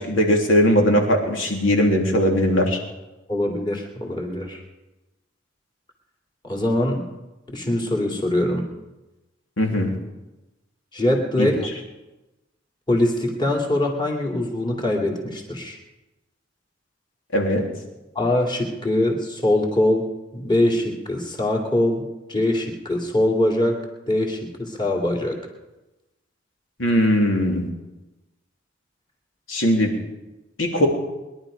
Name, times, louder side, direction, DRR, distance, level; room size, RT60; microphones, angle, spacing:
voice 1, 0.1-2.8 9.6-9.9 11.4-11.5 17.3-17.6 26.8-27.6 29.5-29.9 30.6-30.9, equal, 85° left, 1 dB, 3.0 m, -19 dB
voice 2, 3.3-4.6 6.4-7.1 7.5-8.6 10.9-11.7 12.9-15.8 18.1-20.1 20.3-22.0 22.3-23.8 24.1-25.4, left 1 dB, 25° left, 1 dB, 2.6 m, -22 dB
22.0 x 11.5 x 5.1 m, 1.0 s
head